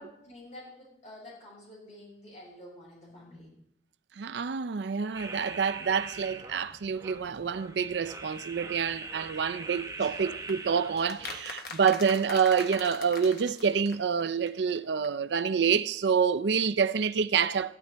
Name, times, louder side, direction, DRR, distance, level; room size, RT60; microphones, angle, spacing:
voice 1, 0.0-3.5 6.1-6.2 10.0-10.3, left 1 dB, 40° left, 6.1 m, -49 dB
voice 2, 4.2-17.8, right 6 dB, 80° right, 0.5 m, -27 dB
sound 1, 5.1-11.4, right 3 dB, 20° right, 1.1 m, -42 dB
sound 2, 10.5-14.2 14.5-14.6 14.7-14.8 15.0-15.1, left 3 dB, 60° left, 1.3 m, -41 dB
15.0 x 12.5 x 3.4 m
head